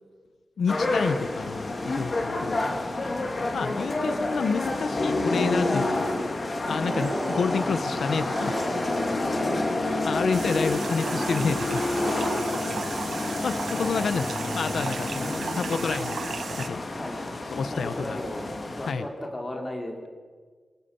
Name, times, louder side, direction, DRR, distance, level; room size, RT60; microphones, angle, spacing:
voice 1, 0.6-2.7 3.5-6.1 6.7-8.7 10.0-11.8 13.4-16.2 16.6-16.8 17.5-18.2 18.9-19.0, left 5 dB, 90° left, 11 dB, 0.9 m, -29 dB
sound 1, 0.7-18.9, left 2 dB, 40° left, 3.0 m, -29 dB
sound 2, 6.6-11.8, right 1 dB, 20° right, 4.8 m, -34 dB
voice 2, 9.3-9.6 12.5-12.7 14.3-14.6 15.1-16.1 17.0-17.3 17.6-18.5 18.8-20.1, left 1 dB, 20° left, 2 dB, 3.6 m, -37 dB
sound 3, 10.3-16.7, right 6 dB, 75° right, 1.1 m, -36 dB
27.0 x 23.5 x 7.0 m, 1.5 s
wide cardioid pair, 175°, 0 cm